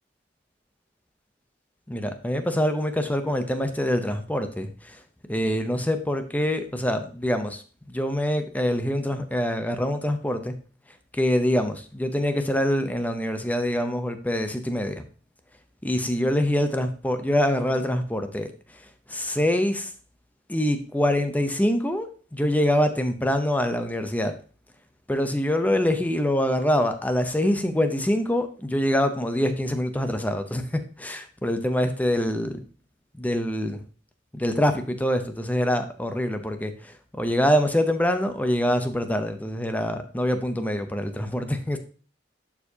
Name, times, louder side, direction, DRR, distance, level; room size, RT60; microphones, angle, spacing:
voice 1, 1.9-5.0 5.3-7.6 7.9-10.5 11.1-15.1 15.8-19.9 20.5-24.3 25.1-32.6 33.2-33.8 34.3-36.7 37.2-41.8, equal, 10° left, 8 dB, 0.7 m, -25 dB
11.0 x 4.6 x 2.8 m, 0.39 s
head